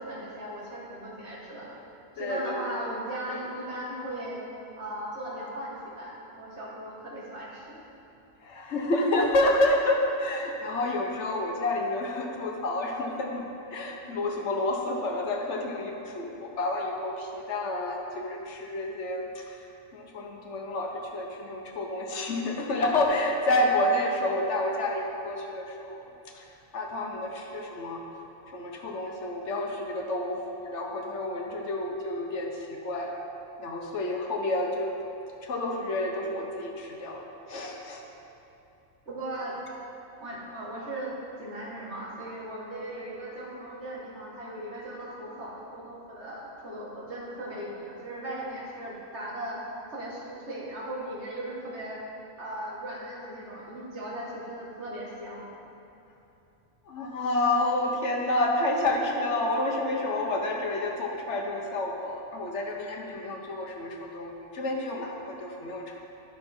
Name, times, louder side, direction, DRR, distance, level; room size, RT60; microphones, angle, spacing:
voice 1, 0.0-1.7 2.1-4.4 4.8-7.8 39.0-39.6 40.2-41.1 41.4-49.6 49.9-52.0 52.4-55.5, right 1 dB, 55° right, -5 dB, 1.8 m, -37 dB
voice 2, 8.4-19.7 19.9-26.0 26.3-26.5 26.7-28.0 28.5-33.2 33.6-35.0 35.4-38.0 56.9-66.0, left 1 dB, 60° left, 0 dB, 1.1 m, -29 dB
11.0 x 6.2 x 4.3 m, 2.8 s
omnidirectional pair, 1.4 m